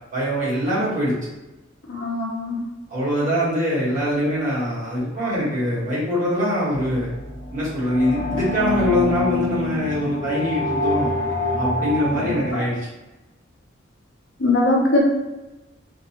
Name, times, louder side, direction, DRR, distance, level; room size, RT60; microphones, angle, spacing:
voice 1, 0.1-1.1 2.9-7.1 7.5-11.1 11.6-12.9, equal, 40° right, -8 dB, 1.2 m, -23 dB
voice 2, 1.9-2.6 14.4-15.0, left 2 dB, 60° left, -2 dB, 0.6 m, -20 dB
sound 1, 6.7-12.5, left 2 dB, 70° right, 1.1 m, -26 dB
2.6 x 2.2 x 2.8 m, 1.0 s
head